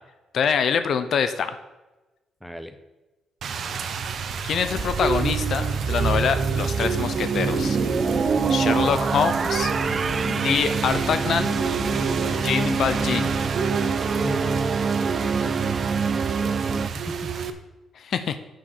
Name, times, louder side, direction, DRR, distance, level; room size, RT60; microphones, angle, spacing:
voice 1, 0.3-1.6 4.4-7.8 8.5-9.7 10.2-11.6 12.4-13.4 17.9-18.4, left 7 dB, 60° left, 11 dB, 0.7 m, -25 dB
voice 2, 2.4-2.8 8.9-9.0 10.0-10.3 11.6-12.4 14.0-15.9 16.4-17.3, left 1 dB, ahead, 9 dB, 1.0 m, -36 dB
Rain, 3.4-17.5, right 6 dB, 60° right, 0.9 m, -29 dB
sound 1, 4.6-13.5, left 3 dB, 40° left, 1.6 m, -37 dB
sound 2, 4.8-16.9, right 5 dB, 40° right, 0.4 m, -26 dB
8.5 x 6.4 x 6.6 m, 1.1 s
cardioid pair, 90°, 0 cm